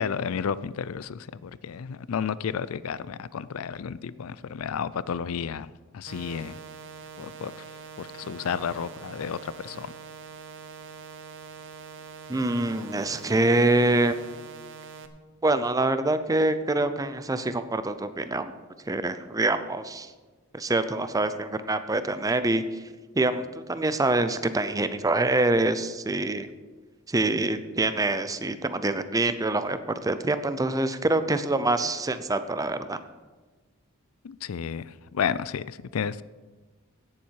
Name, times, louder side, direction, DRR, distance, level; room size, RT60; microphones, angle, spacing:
voice 1, 0.0-5.7 5.9-6.6 7.2-7.6 8.0-9.9 34.2-36.2, left 7 dB, 75° left, 18 dB, 0.4 m, -32 dB
sound 1, 6.1-15.1, right 6 dB, 60° right, 0.9 m, -44 dB
voice 2, 12.3-14.1 15.4-18.5 18.9-20.1 20.5-22.6 23.1-26.5 27.1-33.0, right 2 dB, 15° right, 11 dB, 0.6 m, -25 dB
16.5 x 7.2 x 4.7 m, 1.3 s
head